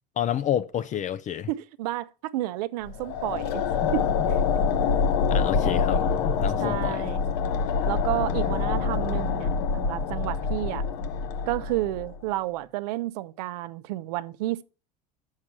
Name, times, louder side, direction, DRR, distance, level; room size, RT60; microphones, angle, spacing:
voice 1, 0.2-1.5 3.8-3.9 5.3-7.1, left 10 dB, 40° left, 0.5 m, -29 dB
voice 2, 1.5-3.6 3.9-4.4 6.6-7.3 7.9-10.8 11.5-14.6, right 16 dB, 85° right, 0.6 m, -31 dB
sound 1, 2.9-12.2, left 5 dB, 75° left, 1.0 m, -26 dB
7.3 x 6.5 x 5.9 m
supercardioid pair, 105°, 20 cm